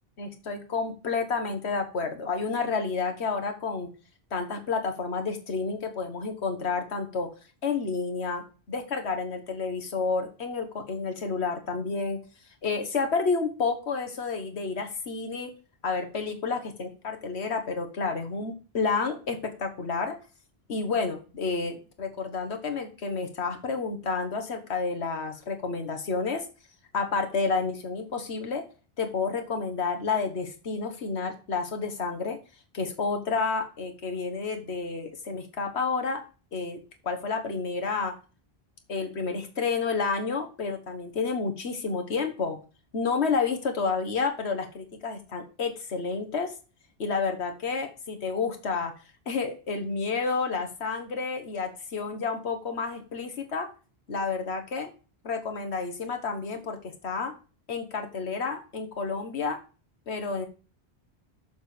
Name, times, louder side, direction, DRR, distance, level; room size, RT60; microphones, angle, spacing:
voice 1, 0.2-3.9 4.3-7.3 7.6-12.2 12.6-15.5 15.8-20.1 20.7-26.4 26.9-28.6 29.0-32.4 32.7-36.2 36.5-36.8 37.0-38.1 38.9-42.6 42.9-46.5 47.0-48.9 49.3-53.7 54.1-54.9 55.2-57.3 57.7-59.6 60.1-60.5, left 4 dB, 90° left, 5 dB, 1.6 m, -30 dB
7.1 x 6.9 x 5.1 m, 0.35 s
omnidirectional pair, 1.1 m